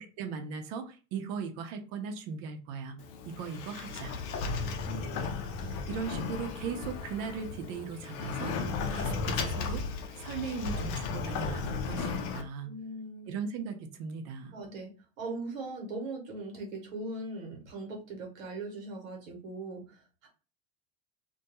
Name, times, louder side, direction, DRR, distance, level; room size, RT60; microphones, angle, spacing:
voice 1, 0.0-3.0 3.3-4.1 5.9-8.6 8.9-9.8 10.2-12.7 13.3-14.6, right 6 dB, 60° right, 7 dB, 0.6 m, -38 dB
Sliding door, 3.0-12.4, left 4 dB, 70° left, 0.6 m, -35 dB
voice 2, 4.8-5.8 12.6-13.3 14.5-14.9 15.2-20.3, right 2 dB, 90° right, 1 dB, 1.0 m, -40 dB
2.3 x 2.2 x 2.8 m, 0.35 s
hypercardioid pair, 90°, 39 cm